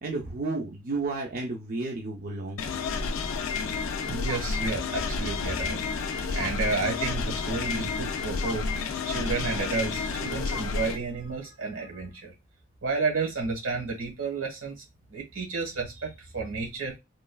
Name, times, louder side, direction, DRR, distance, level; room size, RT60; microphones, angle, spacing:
voice 1, 0.0-2.6, right 3 dB, 45° right, 0.5 m, -32 dB
sound 1, 2.6-11.0, left 4 dB, 80° left, 0.4 m, -30 dB
voice 2, 4.1-5.8 6.0-8.6 9.1-12.3 12.8-14.7 15.1-16.9, right 4 dB, 85° right, 1.3 m, -31 dB
3.0 x 2.3 x 2.2 m
head